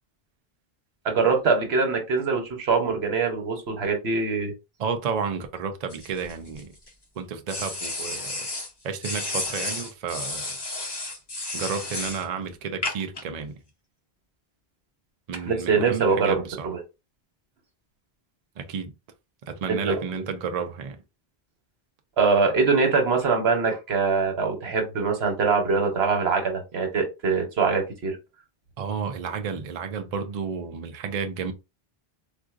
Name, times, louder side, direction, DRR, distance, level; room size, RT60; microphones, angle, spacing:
voice 1, 1.0-4.5 15.5-16.8 19.7-20.0 22.2-28.2, right 4 dB, 90° right, 1.2 m, -23 dB
voice 2, 4.8-6.7 7.2-8.5 8.8-10.4 11.5-13.6 15.3-16.7 18.6-18.9 19.5-21.0 28.8-31.5, right 6 dB, 50° right, 0.5 m, -31 dB
sound 1, 5.9-6.9 7.5-8.7 9.0-12.2 12.8-13.2, left 2 dB, 25° left, 0.8 m, -32 dB
3.7 x 2.5 x 2.4 m
omnidirectional pair, 1.0 m